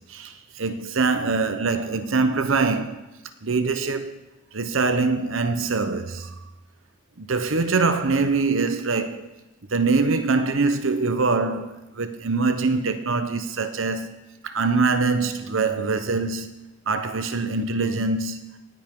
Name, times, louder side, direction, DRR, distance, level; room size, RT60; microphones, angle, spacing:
voice 1, 0.0-3.0 3.4-4.2 4.5-6.3 7.2-9.3 9.7-16.6 16.9-18.5, right 4 dB, 80° right, 0.9 m, -24 dB
18.5 x 9.4 x 3.8 m
head